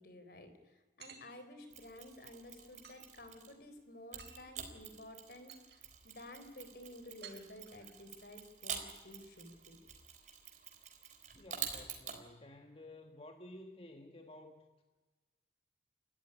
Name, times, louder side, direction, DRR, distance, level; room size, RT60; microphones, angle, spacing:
voice 1, 0.0-9.8, left 1 dB, 60° left, 9 dB, 3.9 m, -53 dB
sound 1, 1.0-1.4 2.8-3.1 4.2-4.5 5.1-5.2 5.5-5.8 7.2-8.0, right 7 dB, 70° right, 4.2 m, -54 dB
Mechanisms, 1.7-3.6 4.1-12.2, right 7 dB, 45° right, 3.6 m, -47 dB
voice 2, 11.3-14.8, left 1 dB, 35° left, 5 dB, 1.5 m, -53 dB
29.5 x 14.0 x 10.0 m, 1.2 s
head